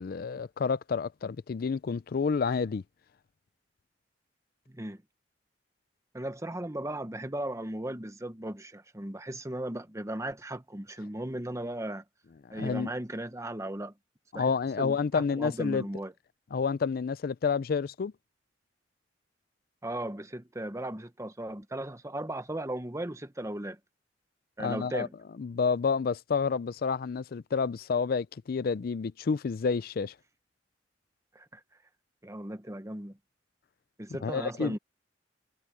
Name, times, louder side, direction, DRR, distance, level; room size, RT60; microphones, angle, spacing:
voice 1, 0.0-2.8 12.5-12.9 14.3-15.8 16.5-18.1 24.6-25.1 25.4-30.1 34.2-34.7, left 5 dB, 55° left, 0.4 m, -29 dB
voice 2, 4.7-5.0 6.1-12.0 12.5-13.9 14.3-14.5 14.8-16.1 19.8-23.8 24.6-25.1 31.3-31.6 32.2-33.2 34.0-34.8, right 1 dB, 15° right, 1.1 m, -36 dB
head